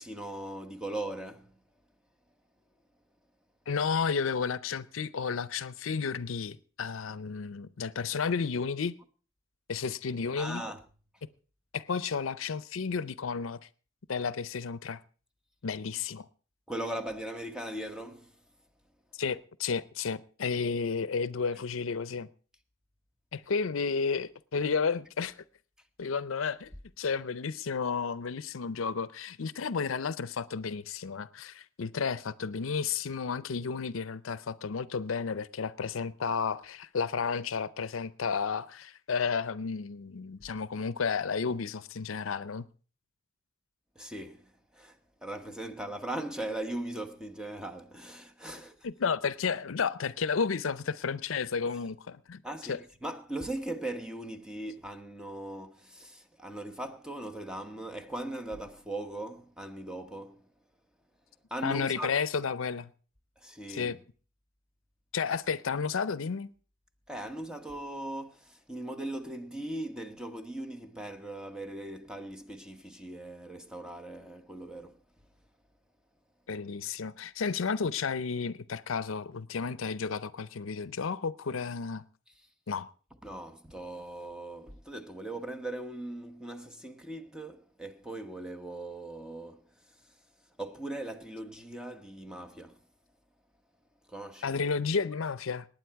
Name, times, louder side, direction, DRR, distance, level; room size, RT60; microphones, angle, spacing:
voice 1, 0.0-1.6 10.4-10.8 16.7-18.4 43.9-48.8 52.4-60.5 61.5-62.1 63.4-64.0 67.1-75.0 83.2-90.1 90.6-92.8 94.1-94.6, right 1 dB, 5° right, 1.0 m, -39 dB
voice 2, 3.7-9.0 9.7-10.6 11.7-13.6 14.1-15.0 15.6-16.3 19.1-22.3 23.3-25.4 26.0-26.7 27.0-42.7 48.8-52.4 52.7-52.8 61.6-62.9 63.7-64.0 65.1-66.5 76.5-82.0 82.7-82.9 94.4-95.7, left 5 dB, 80° left, 0.6 m, -32 dB
19.5 x 9.1 x 4.6 m
head